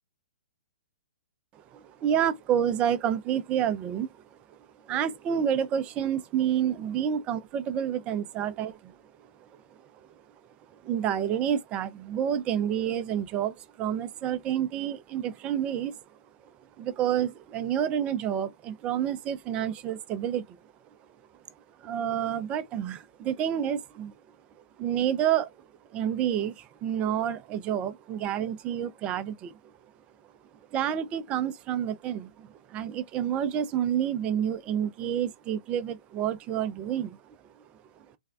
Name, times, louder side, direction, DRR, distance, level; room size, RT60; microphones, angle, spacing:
voice 1, 1.7-4.2 4.5-4.6 4.9-9.0 9.5-9.6 10.7-15.9 16.8-20.6 21.8-24.1 24.8-25.7 25.9-29.5 30.7-37.4, right 9 dB, 25° right, 0.5 m, -29 dB
3.4 x 2.2 x 3.3 m
hypercardioid pair, 125°, 5 cm